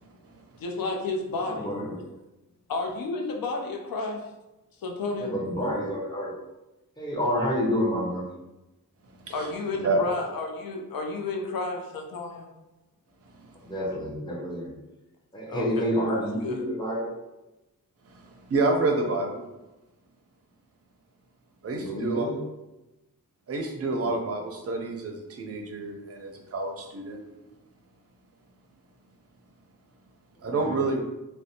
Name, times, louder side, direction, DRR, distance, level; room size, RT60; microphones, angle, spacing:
voice 1, 0.6-1.7 2.7-4.2 4.8-5.3 9.3-12.5 15.5-16.6, left 3 dB, 80° left, 2 dB, 0.5 m, -31 dB
voice 2, 1.4-2.0 5.2-6.3 7.0-8.3 13.6-14.7 15.3-17.1 21.7-22.4 24.0-24.1 30.4-30.8, equal, 15° left, -4 dB, 0.6 m, -29 dB
voice 3, 9.2-9.5 9.8-10.1 13.4-13.6 18.0-19.4 21.6-22.3 23.5-27.2 30.4-31.0, right 2 dB, 45° right, 3 dB, 0.4 m, -28 dB
2.5 x 2.1 x 2.7 m, 0.99 s
wide cardioid pair, 130°, 34 cm